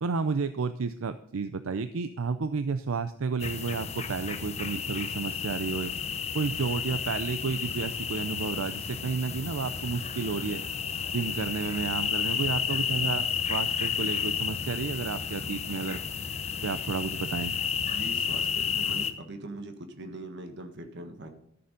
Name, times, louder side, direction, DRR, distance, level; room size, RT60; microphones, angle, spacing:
voice 1, 0.0-5.9 6.3-10.6 11.1-16.0 16.6-17.5, right 4 dB, 75° right, 11 dB, 0.5 m, -31 dB
sound 1, 3.4-19.1, left 6 dB, 30° left, 0.8 m, -32 dB
voice 2, 17.9-21.3, right 2 dB, 55° right, 6 dB, 1.5 m, -41 dB
13.0 x 6.9 x 5.2 m, 0.77 s
head